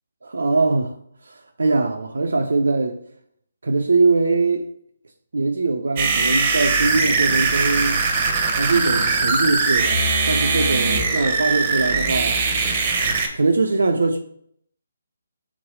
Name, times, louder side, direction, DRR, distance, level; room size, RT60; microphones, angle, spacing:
voice 1, 0.2-1.0 1.2-3.0 3.6-4.7 5.3-8.1 8.4-10.0 10.3-12.4 13.3-14.2, right 3 dB, 70° right, 0.4 m, -21 dB
sound 1, 6.0-13.3, right 4 dB, 35° right, 0.9 m, -21 dB
3.8 x 3.1 x 4.5 m
figure-of-eight pair, 140°, 0 cm